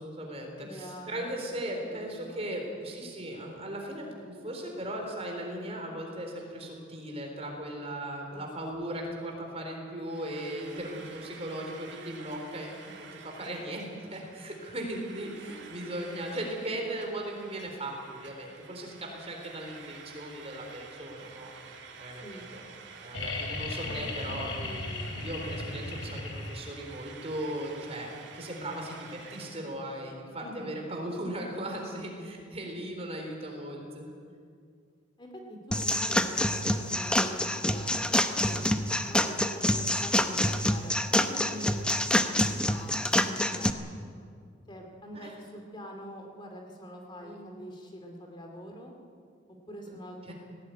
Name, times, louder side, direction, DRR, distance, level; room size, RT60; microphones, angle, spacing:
voice 1, 0.0-21.5 22.0-22.2 22.5-22.6 23.0-24.5 25.1-34.0 38.4-38.7 45.1-45.3 47.2-47.4 50.3-50.4, right 1 dB, 30° right, 1 dB, 4.0 m, -38 dB
voice 2, 0.6-1.2 1.6-2.5 8.3-8.5 8.8-8.9 12.9-13.0 13.9-14.1 15.4-16.5 22.2-22.5 23.7-25.4 30.4-30.8 35.2-38.2 39.0-42.1 42.3-44.0 44.7-48.9 49.7-50.3, equal, 25° left, 2 dB, 2.5 m, -45 dB
Frying (food), 10.0-29.8, right 5 dB, 65° right, 2.3 m, -49 dB
sound 1, 23.1-26.9 28.6-28.7, left 2 dB, 90° left, 3.2 m, -36 dB
sound 2, 35.7-43.7, left 1 dB, 5° left, 0.8 m, -27 dB
18.0 x 18.0 x 9.4 m, 2.2 s
head